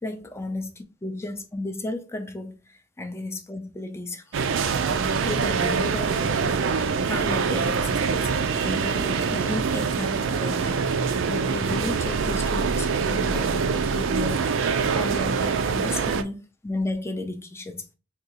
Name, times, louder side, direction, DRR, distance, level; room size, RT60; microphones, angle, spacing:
voice 1, 0.0-4.4 5.2-6.4 6.7-16.4 16.6-17.9, left 2 dB, 15° left, 0.4 m, -34 dB
sound 1, 4.3-16.2, right 5 dB, 75° right, 0.4 m, -24 dB
3.7 x 2.3 x 2.8 m
head